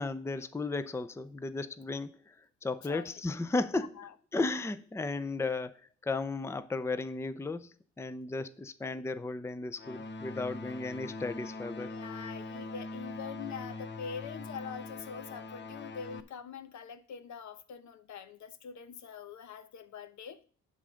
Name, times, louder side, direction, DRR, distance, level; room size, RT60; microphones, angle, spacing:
voice 1, 0.0-2.3 2.6-4.0 4.3-11.9, left 3 dB, 10° left, 0.5 m, -35 dB
sound 1, 9.8-16.2, left 2 dB, 35° left, 0.8 m, -42 dB
voice 2, 11.8-20.4, left 7 dB, 70° left, 1.0 m, -44 dB
11.0 x 3.8 x 6.3 m
cardioid pair, 90°, 30 cm